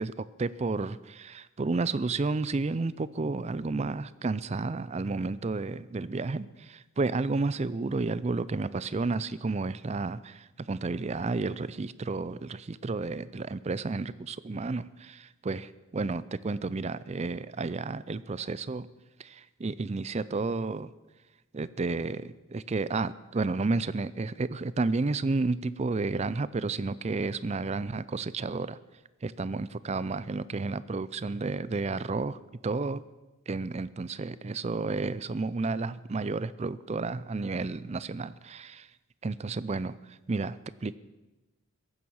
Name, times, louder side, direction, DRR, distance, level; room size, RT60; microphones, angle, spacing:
voice 1, 0.0-18.9 19.2-20.9 21.5-28.8 29.2-32.4 32.6-33.0 33.5-38.9 39.2-41.0, right 3 dB, 30° right, 17 dB, 0.4 m, -31 dB
15.0 x 11.0 x 7.1 m, 1.1 s
head